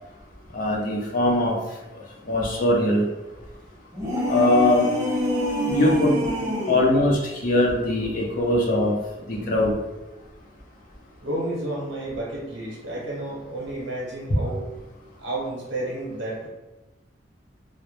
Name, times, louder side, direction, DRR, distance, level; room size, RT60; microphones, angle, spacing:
voice 1, 0.5-1.5 2.3-3.0 4.3-4.8 5.7-6.2 6.7-8.9 9.3-9.7, left 1 dB, 45° left, -2 dB, 0.5 m, -21 dB
sound 1, 3.9-6.9, left 1 dB, 15° right, 0.6 m, -25 dB
voice 2, 11.2-14.6 15.2-16.5, right 1 dB, 90° right, -4 dB, 0.8 m, -31 dB
2.2 x 2.0 x 2.8 m, 1.1 s
head